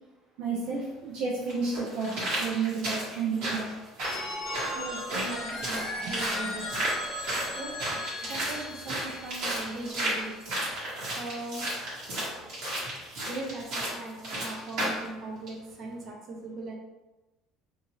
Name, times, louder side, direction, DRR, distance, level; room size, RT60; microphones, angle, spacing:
voice 1, 0.4-3.7 6.0-6.1, right 5 dB, 85° right, -6 dB, 0.6 m, -31 dB
sound 1, 0.6-0.7 1.5-15.1 15.5-15.6, right 1 dB, 60° right, 1.4 m, -33 dB
Telephone, 4.0-9.8, left 1 dB, 35° left, 0.6 m, -37 dB
voice 2, 4.7-6.7 7.6-10.4 11.0-11.7 12.0-12.4 13.3-16.7, right 2 dB, 40° right, 1 dB, 0.5 m, -39 dB
2.6 x 2.4 x 3.0 m, 1.1 s
cardioid pair, 165°, 0 cm